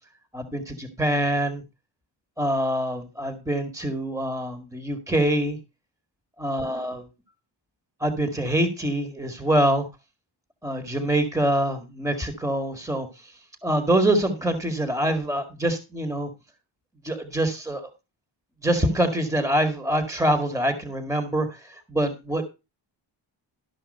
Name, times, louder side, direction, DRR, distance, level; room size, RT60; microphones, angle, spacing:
voice 1, 0.3-1.6 2.4-5.6 6.4-7.0 8.0-9.9 10.6-13.1 13.6-16.3 17.0-17.9 18.6-21.5 21.9-22.5, right 1 dB, 5° right, 7 dB, 2.1 m, -25 dB
13.0 x 5.6 x 5.5 m, 0.28 s
cardioid pair, 60°, 49 cm